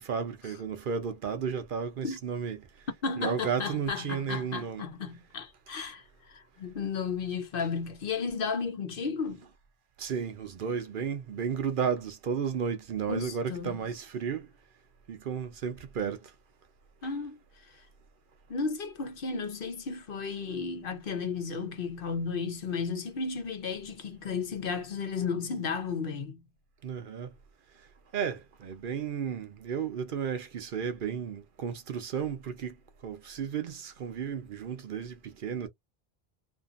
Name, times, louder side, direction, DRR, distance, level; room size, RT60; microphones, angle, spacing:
voice 1, 0.0-2.7 3.2-4.9 10.0-14.5 15.1-16.3 26.8-27.3 28.1-32.8 33.0-35.7, right 7 dB, 60° right, 0.7 m, -33 dB
voice 2, 3.0-6.0 6.3-9.4 13.1-13.8 17.0-17.4 18.5-26.4, left 5 dB, 60° left, 0.9 m, -33 dB
2.6 x 2.6 x 2.4 m
omnidirectional pair, 1.0 m